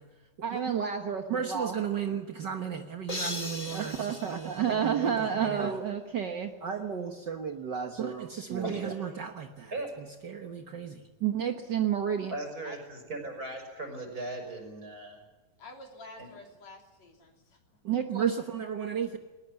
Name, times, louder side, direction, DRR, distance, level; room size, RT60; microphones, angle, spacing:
voice 1, 0.4-9.7 10.0-12.3 17.8-19.2, right 7 dB, 70° right, 5 dB, 1.0 m, -31 dB
sound 1, 3.1-5.4, left 2 dB, 10° left, 2.2 m, -39 dB
voice 2, 8.6-9.1 9.7-9.9 12.3-15.2 16.2-16.3, right 2 dB, 25° right, 3 dB, 6.0 m, -38 dB
voice 3, 15.6-17.6, left 2 dB, 55° left, 2 dB, 4.2 m, -49 dB
20.0 x 19.5 x 9.5 m, 1.2 s
omnidirectional pair, 3.9 m